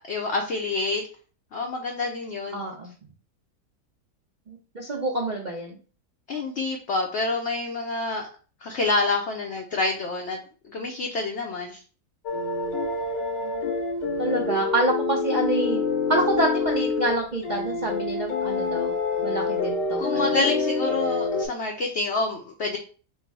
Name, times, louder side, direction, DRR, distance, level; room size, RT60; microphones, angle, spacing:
voice 1, 0.1-1.0 1.5-2.6 6.3-8.3 8.6-10.4 10.7-11.8 20.0-22.8, left 3 dB, 65° left, 2 dB, 0.7 m, -27 dB
voice 2, 2.5-2.9 4.5-5.8 13.4-13.7 14.2-15.8 16.1-18.9 19.2-20.2, right 2 dB, 70° right, -1 dB, 0.4 m, -27 dB
sound 1, 12.3-17.2 17.4-21.5, left 4 dB, 85° left, 1.5 m, -26 dB
4.4 x 2.1 x 4.6 m, 0.38 s
omnidirectional pair, 1.8 m